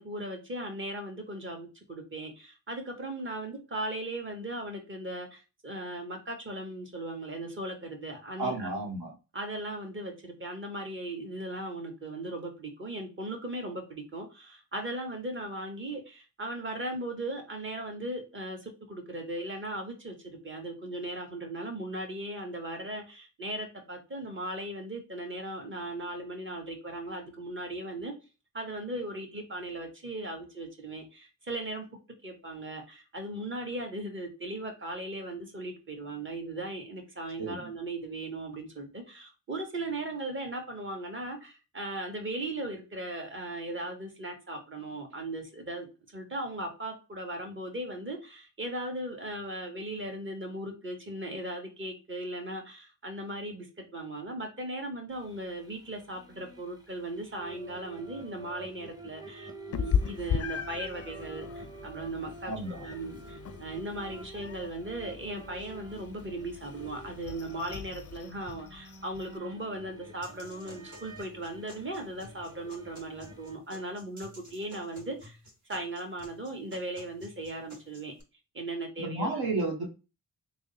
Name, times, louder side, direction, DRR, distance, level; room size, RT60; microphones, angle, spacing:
voice 1, 0.0-8.7 9.3-28.1 28.5-31.8 32.2-75.4 75.7-78.1 78.5-79.4, right 1 dB, 30° right, 1.4 m, -38 dB
voice 2, 8.4-9.1 37.4-37.7 62.4-63.3 79.0-79.9, right 2 dB, 65° right, 1.1 m, -33 dB
sound 1, 55.1-73.6, right 2 dB, 10° right, 1.1 m, -48 dB
Meow, 59.7-69.4, left 7 dB, 40° left, 0.4 m, -37 dB
sound 2, 70.2-78.2, equal, 45° right, 1.7 m, -53 dB
3.5 x 2.1 x 4.0 m
supercardioid pair, 40°, 41 cm